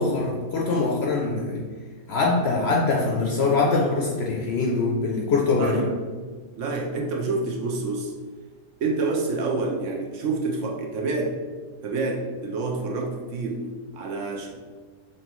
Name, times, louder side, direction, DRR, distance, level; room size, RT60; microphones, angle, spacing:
voice 1, 0.0-1.7 2.1-5.8, left 3 dB, 65° left, -1 dB, 0.7 m, -23 dB
voice 2, 5.6-6.0 6.6-8.2 8.8-11.4 11.8-14.5, right 3 dB, 65° right, 0 dB, 0.9 m, -28 dB
5.3 x 2.9 x 3.0 m, 1.4 s
omnidirectional pair, 1.5 m